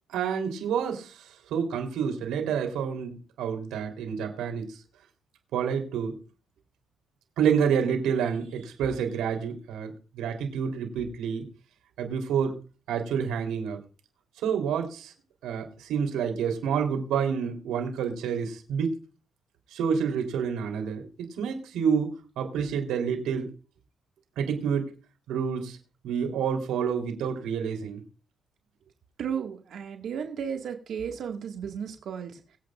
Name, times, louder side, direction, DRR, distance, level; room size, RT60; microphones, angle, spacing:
voice 1, 0.1-4.8 5.5-6.2 7.4-11.5 12.0-12.6 12.9-13.8 14.4-15.1 15.4-18.9 19.7-22.1 22.4-23.5 24.4-24.9 25.3-25.8 26.0-28.0, right 7 dB, 90° right, 4 dB, 3.4 m, -28 dB
voice 2, 29.2-32.3, right 7 dB, 70° right, 3 dB, 1.8 m, -34 dB
22.5 x 8.5 x 2.5 m, 0.34 s
cardioid pair, 90°, 0 cm